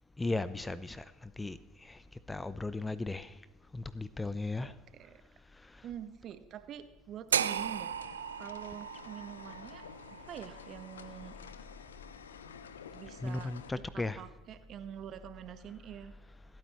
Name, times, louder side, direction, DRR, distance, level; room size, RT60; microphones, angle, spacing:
voice 1, 0.2-2.0 2.3-3.4 3.7-4.7 5.5-5.9 13.2-14.3, left 2 dB, 15° left, 0.7 m, -37 dB
voice 2, 4.6-5.2 5.8-7.9 8.4-9.8 10.3-11.4 12.9-13.5 13.9-16.1, right 9 dB, 50° right, 1.3 m, -46 dB
sound 1, 7.3-11.4, right 8 dB, 85° right, 0.5 m, -36 dB
sound 2, 7.5-13.7, left 7 dB, 85° left, 0.7 m, -51 dB
27.0 x 9.4 x 3.1 m
hypercardioid pair, 70°, 0 cm